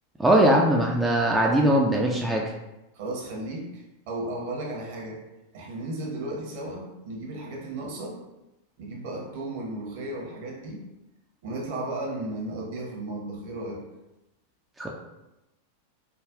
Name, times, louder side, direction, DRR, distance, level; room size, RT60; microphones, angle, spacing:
voice 1, 0.2-2.4 14.8-14.9, right 1 dB, 10° right, -2 dB, 0.4 m, -20 dB
voice 2, 2.9-5.2 5.5-8.2 8.8-10.8 11.4-13.8, right 1 dB, 50° right, -2 dB, 0.9 m, -34 dB
4.9 x 2.3 x 2.4 m, 0.95 s
figure-of-eight pair, 90°, 0 cm